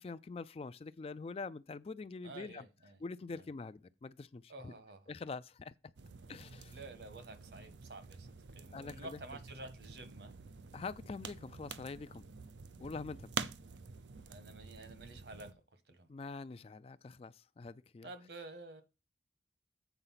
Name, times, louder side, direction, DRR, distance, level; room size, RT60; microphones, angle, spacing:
voice 1, 0.0-2.6 3.0-4.7 5.1-5.7 6.3-6.8 8.7-9.2 10.7-12.3 12.8-13.3 16.1-18.1, left 4 dB, 35° left, 0.3 m, -45 dB
voice 2, 2.2-3.0 3.3-3.4 4.5-5.1 6.7-10.3 14.3-15.5 15.9-16.1 18.0-18.8, right 2 dB, 70° right, 1.3 m, -50 dB
sound 1, 6.0-15.5, right 5 dB, 90° right, 0.6 m, -47 dB
8.1 x 4.8 x 5.7 m
head